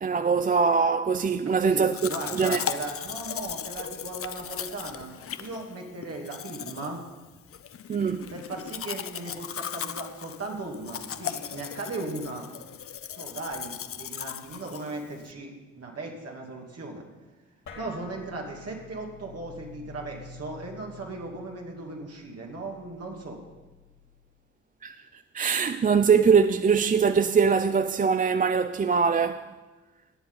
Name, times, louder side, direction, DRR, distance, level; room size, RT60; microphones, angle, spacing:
voice 1, 0.0-1.9 2.3-2.6 7.9-8.3 24.8-29.4, right 5 dB, 30° right, 0.4 m, -22 dB
voice 2, 1.4-7.0 8.3-12.5 13.2-17.1 17.8-23.4, right 2 dB, 55° right, 2.6 m, -37 dB
Domestic sounds home sounds, 1.9-15.3, left 9 dB, 50° left, 0.6 m, -37 dB
sound 1, 17.7-24.4, left 3 dB, 70° left, 2.7 m, -49 dB
17.5 x 7.6 x 4.0 m
supercardioid pair, 40°, 30 cm